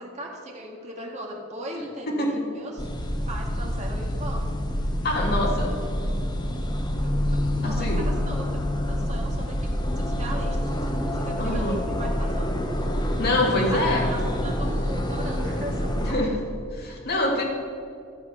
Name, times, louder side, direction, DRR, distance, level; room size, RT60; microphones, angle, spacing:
voice 1, 0.0-2.9 3.3-4.4 7.0-9.7 10.0-12.6 13.4-16.3, right 1 dB, 35° right, 0 dB, 1.8 m, -38 dB
voice 2, 2.1-2.4 5.0-5.7 7.6-8.0 11.4-11.8 13.2-14.1 16.0-16.3 16.7-17.4, left 1 dB, 50° left, -1 dB, 2.1 m, -25 dB
sound 1, 2.8-16.1, equal, 20° left, 0.9 m, -27 dB
14.0 x 7.3 x 5.7 m, 2.5 s
head